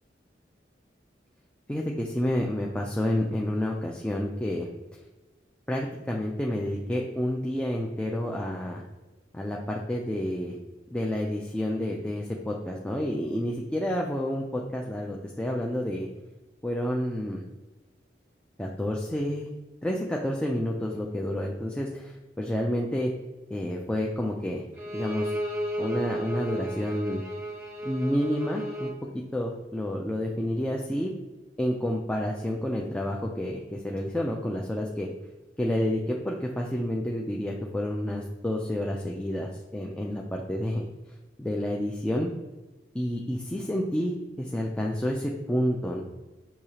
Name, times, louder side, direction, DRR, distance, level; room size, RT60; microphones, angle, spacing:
voice 1, 1.7-4.7 5.7-8.8 9.3-10.6 10.9-16.1 16.6-17.4 18.6-19.5 19.8-23.1 23.5-24.6 24.9-25.3 25.8-27.2 27.8-31.1 31.6-35.1 35.6-40.8 41.4-42.3 42.9-46.0, left 1 dB, 5° left, -1 dB, 0.3 m, -29 dB
Bowed string instrument, 24.8-29.0, right 1 dB, 15° right, 1.0 m, -33 dB
6.3 x 2.7 x 2.9 m, 1.2 s
head